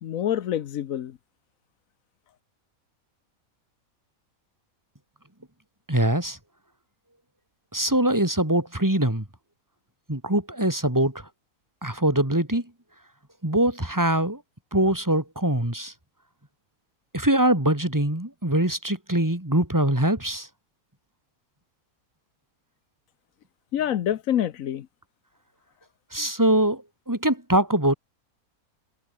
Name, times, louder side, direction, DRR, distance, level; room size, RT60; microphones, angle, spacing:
voice 1, 0.0-1.2 23.7-24.9, left 10 dB, 70° left, 1.2 m, -26 dB
voice 2, 5.9-6.4 7.7-9.2 10.1-11.2 11.8-12.6 13.4-14.4 14.7-15.9 17.1-20.5 26.1-26.8 27.1-27.9, right 1 dB, 10° right, 3.3 m, -23 dB
omnidirectional pair, 1.5 m